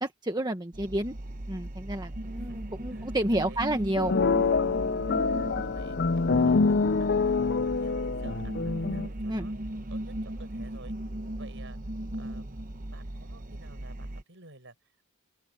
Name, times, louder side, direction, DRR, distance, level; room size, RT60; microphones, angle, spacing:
voice 1, 0.0-1.1 1.5-4.2 9.3-9.5, right 1 dB, 20° right, 1.6 m, -30 dB
sound 1, 0.7-14.2, right 1 dB, 40° right, 1.0 m, -37 dB
voice 2, 2.9-3.6 5.1-6.0 6.4-9.5 9.9-10.9 11.3-11.8 12.2-15.1, right 2 dB, 60° right, 7.3 m, -53 dB
sound 2, 3.9-9.1, left 4 dB, 50° left, 0.6 m, -26 dB
open air
head